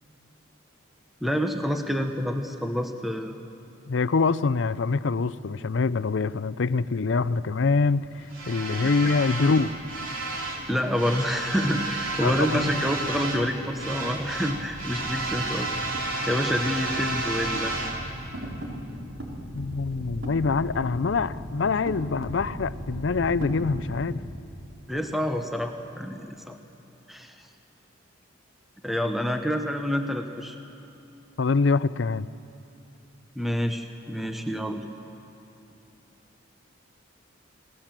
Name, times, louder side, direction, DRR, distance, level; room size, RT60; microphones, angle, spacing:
voice 1, 1.2-3.4 8.8-8.9 10.7-17.7 24.9-26.6 27.1-27.3 28.8-30.6 33.4-34.8, equal, ahead, 5 dB, 1.0 m, -28 dB
voice 2, 3.9-8.1 8.5-9.7 12.2-12.8 19.5-24.2 31.4-32.3, left 4 dB, 60° left, 16 dB, 0.5 m, -25 dB
sound 1, 7.5-24.2, right 2 dB, 75° right, 3.5 m, -33 dB
27.0 x 18.0 x 7.5 m, 2.7 s
head